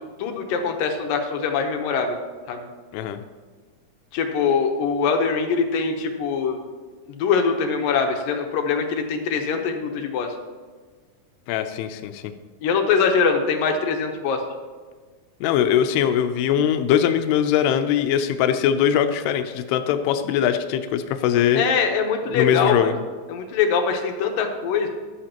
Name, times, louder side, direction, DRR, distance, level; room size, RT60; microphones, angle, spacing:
voice 1, 0.0-2.2 2.5-2.6 4.1-6.6 7.1-10.3 12.6-14.4 21.6-22.9 23.3-24.9, left 5 dB, 70° left, 4 dB, 2.4 m, -23 dB
voice 2, 11.5-12.3 15.4-21.6 22.3-23.0, left 9 dB, 90° left, 7 dB, 2.7 m, -21 dB
14.5 x 11.0 x 3.0 m, 1.5 s
omnidirectional pair, 4.6 m